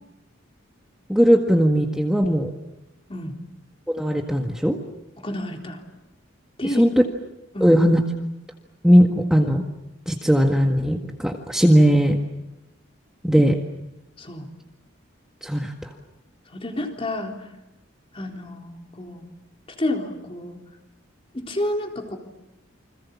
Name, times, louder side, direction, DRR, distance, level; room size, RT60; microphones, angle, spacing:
voice 1, 1.1-2.5 3.9-4.8 6.8-6.9 7.6-8.0 8.8-9.6 10.1-12.2 13.2-13.6 15.4-15.9, equal, 5° right, 2 dB, 1.7 m, -18 dB
voice 2, 5.2-5.8 6.6-6.9 7.5-7.8 14.2-14.5 16.5-17.5 18.1-19.2 19.8-20.6 21.3-22.2, left 1 dB, 30° left, 3 dB, 3.8 m, -30 dB
29.5 x 26.0 x 7.3 m, 0.92 s
head